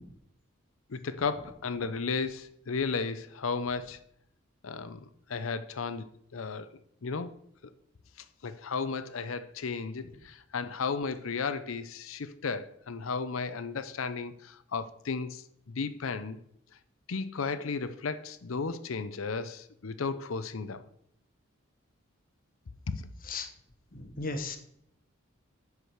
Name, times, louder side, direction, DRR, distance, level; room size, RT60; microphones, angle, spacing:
voice 1, 0.9-4.0 4.6-5.0 5.3-6.1 6.3-6.7 7.0-7.3 8.4-16.4 17.1-20.8 22.9-23.0, left 4 dB, 75° left, 0.6 m, -34 dB
voice 2, 23.9-24.6, left 3 dB, 40° left, 1.1 m, -35 dB
9.9 x 4.9 x 6.4 m
head